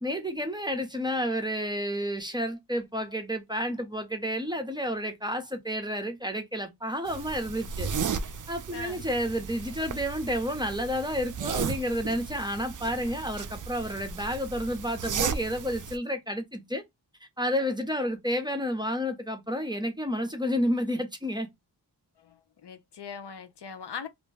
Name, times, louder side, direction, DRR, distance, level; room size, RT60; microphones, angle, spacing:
voice 1, 0.0-7.9 8.5-16.8 17.4-21.5, equal, 10° right, 0.7 m, -30 dB
sound 1, 7.1-16.0, right 6 dB, 45° right, 0.4 m, -35 dB
voice 2, 22.2-24.1, left 7 dB, 65° left, 0.6 m, -41 dB
2.5 x 2.1 x 3.2 m
cardioid pair, 50°, 44 cm